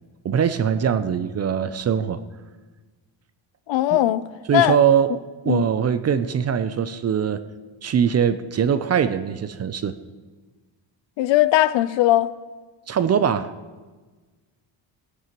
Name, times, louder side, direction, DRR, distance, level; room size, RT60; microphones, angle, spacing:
voice 1, 0.2-2.2 3.9-4.0 4.5-5.1 5.5-7.4 7.8-10.0 12.9-13.5, right 8 dB, 35° right, 0.5 m, -21 dB
voice 2, 3.7-4.2 4.5-4.8 5.5-5.7 11.2-12.3, left 14 dB, 65° left, 0.6 m, -19 dB
19.0 x 11.0 x 3.0 m
cardioid pair, 125°, 48 cm